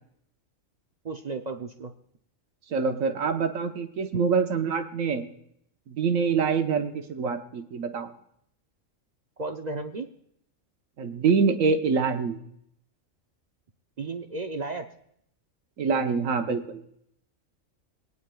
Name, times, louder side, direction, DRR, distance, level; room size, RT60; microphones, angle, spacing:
voice 1, 1.0-1.9 9.4-10.1 14.0-14.9, right 3 dB, 45° right, 5 dB, 0.6 m, -34 dB
voice 2, 2.7-5.2 5.9-8.1 11.0-12.4 15.8-16.8, right 5 dB, 80° right, 6 dB, 1.3 m, -25 dB
22.0 x 9.5 x 2.3 m, 0.69 s
omnidirectional pair, 1.4 m